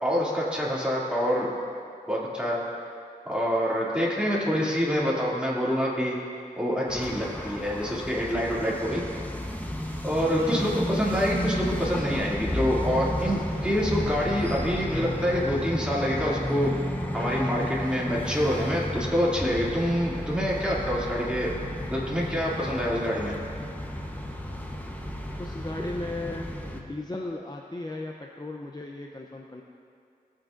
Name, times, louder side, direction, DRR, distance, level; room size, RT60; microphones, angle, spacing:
voice 1, 0.0-1.5 2.1-2.6 3.3-6.2 6.6-9.0 10.0-16.7 17.1-21.5 21.9-23.3, equal, 5° right, -6 dB, 2.6 m, -26 dB
sound 1, 6.9-26.8, equal, 10° left, 1.0 m, -32 dB
voice 2, 10.4-10.8 25.4-29.6, left 2 dB, 25° left, 1 dB, 0.7 m, -36 dB
18.5 x 8.5 x 2.6 m, 2.3 s
wide cardioid pair, 50°, 15 cm